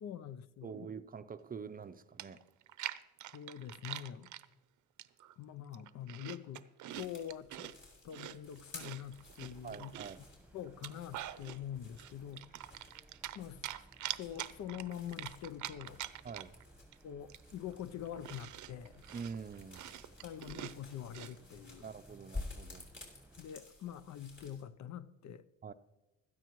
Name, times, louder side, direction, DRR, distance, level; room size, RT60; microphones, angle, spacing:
voice 1, 0.0-0.9 3.3-4.3 5.4-6.7 6.9-7.7 8.0-9.9 10.5-12.5 13.3-13.6 14.1-16.0 17.0-19.1 20.2-21.9 23.4-25.4, left 10 dB, 65° left, 0.6 m, -45 dB
voice 2, 0.6-2.4 9.6-10.2 16.2-16.5 19.1-19.9 21.8-22.9 25.6-25.7, right 6 dB, 30° right, 0.5 m, -45 dB
Chewing mastication, 1.8-1.9 2.2-4.5 5.0-5.3 5.7-7.7 8.1-10.2 10.7-11.6 12.0-13.4 13.6-16.6 16.9-17.0 17.3-21.3, right 13 dB, 75° right, 0.6 m, -45 dB
sound 1, 6.9-24.6, left 2 dB, 40° left, 5.2 m, -53 dB
sound 2, 9.1-23.4, right 2 dB, 5° right, 1.2 m, -61 dB
16.0 x 13.0 x 3.1 m
cardioid pair, 90°, 30 cm